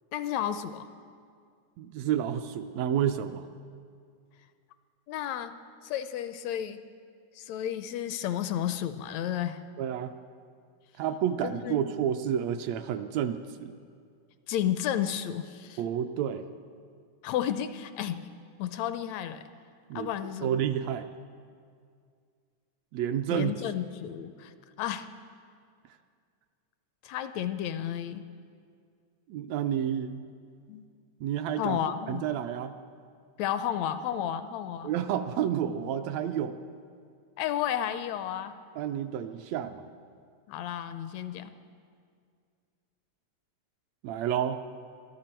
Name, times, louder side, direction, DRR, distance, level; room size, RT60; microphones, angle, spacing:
voice 1, 0.1-0.9 5.1-5.6 5.8-6.8 7.4-9.6 11.4-11.8 14.5-15.8 17.2-18.2 18.6-19.5 20.0-20.5 23.3-24.5 24.8-25.1 27.0-28.3 30.7-30.9 31.6-32.2 33.4-34.9 37.4-38.5 40.5-41.5, left 10 dB, 80° left, 11 dB, 1.7 m, -32 dB
voice 2, 1.8-3.5 9.8-10.1 11.0-13.8 15.8-16.5 19.9-20.1 20.4-21.1 22.9-23.5 29.3-30.3 31.2-31.8 32.1-32.8 34.8-36.6 38.8-39.9 44.0-44.6, right 9 dB, 80° right, 8 dB, 1.7 m, -30 dB
24.0 x 13.5 x 4.5 m, 2.2 s
omnidirectional pair, 3.3 m